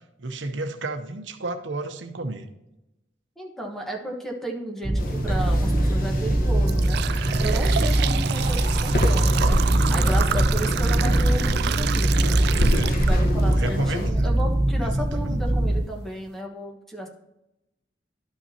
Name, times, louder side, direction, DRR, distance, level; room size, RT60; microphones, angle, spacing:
voice 1, 0.2-2.5 12.7-13.0 13.4-14.4 15.1-15.4, right 2 dB, 85° right, 6 dB, 0.9 m, -32 dB
voice 2, 3.4-7.0 7.4-12.4 12.8-17.1, right 1 dB, ahead, 0 dB, 1.4 m, -34 dB
sound 1, 4.8-15.8, right 1 dB, 40° right, 0.9 m, -22 dB
sound 2, 5.0-14.1, equal, 50° left, 1.3 m, -28 dB
sound 3, 5.7-5.9 6.4-13.5 14.0-14.1 14.9-15.0 15.6-15.7 16.1-16.3, right 10 dB, 60° right, 0.3 m, -30 dB
12.0 x 5.7 x 2.9 m, 0.92 s
head